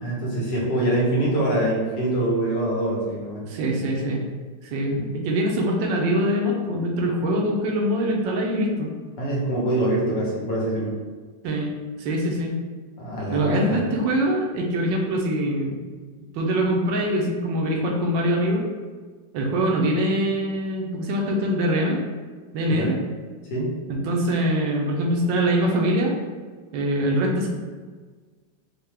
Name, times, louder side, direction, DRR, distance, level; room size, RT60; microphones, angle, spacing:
voice 1, 0.0-3.4 4.9-5.0 9.2-10.9 13.0-13.8 22.7-23.0 23.5-23.7, right 1 dB, 70° left, -4 dB, 1.5 m, -24 dB
voice 2, 3.4-4.3 4.7-8.9 11.4-12.5 13.3-15.8 16.3-18.7 19.3-22.0 22.5-23.0 23.9-26.1 26.7-27.5, equal, 80° right, 0 dB, 1.3 m, -23 dB
4.5 x 2.1 x 3.3 m, 1.4 s
omnidirectional pair, 2.0 m